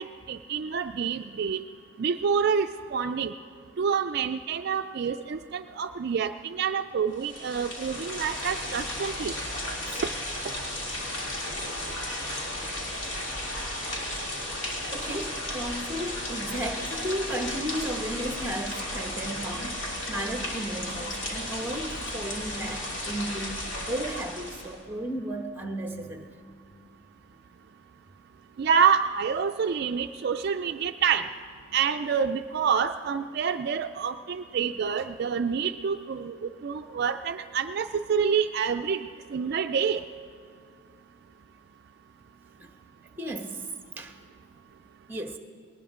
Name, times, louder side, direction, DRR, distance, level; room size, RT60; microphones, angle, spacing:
voice 1, 0.0-1.6 2.0-3.3 3.8-9.3 28.6-31.3 31.7-40.0, right 6 dB, 50° right, 7 dB, 0.3 m, -27 dB
sound 1, 7.1-24.8, left 1 dB, 65° left, 2.8 m, -34 dB
voice 2, 14.7-26.3 42.6-42.7 43.2-43.6 44.0-44.2 45.1-45.4, right 1 dB, 10° right, 5 dB, 1.0 m, -34 dB
20.5 x 19.0 x 3.7 m, 2.3 s
head